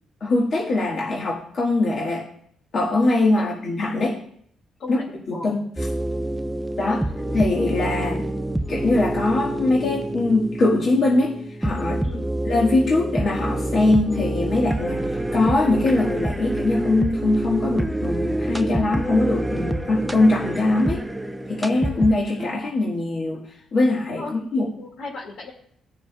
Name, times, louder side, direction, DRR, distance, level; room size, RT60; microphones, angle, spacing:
voice 1, 0.2-2.2 2.7-4.2 4.9-5.0 5.3-5.6 6.8-7.0 7.3-8.3 8.7-11.3 11.6-12.0 12.5-21.0 21.5-23.4 23.7-24.7, left 2 dB, 50° left, -3 dB, 1.6 m, -22 dB
sound 1, 5.8-22.5, right 1 dB, 10° right, 0.4 m, -27 dB
voice 2, 24.8-25.5, left 3 dB, 70° left, 0 dB, 2.1 m, -35 dB
16.5 x 6.5 x 2.3 m, 0.65 s
cardioid pair, 90°, 0 cm